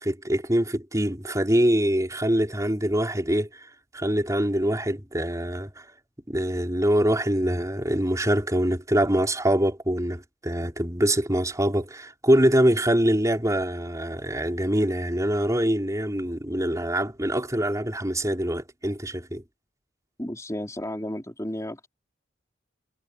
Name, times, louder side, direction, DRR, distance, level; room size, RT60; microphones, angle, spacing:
voice 1, 0.0-5.9 6.3-19.4, right 1 dB, 15° right, 4.7 m, -24 dB
voice 2, 20.2-21.9, left 1 dB, 15° left, 4.4 m, -33 dB
head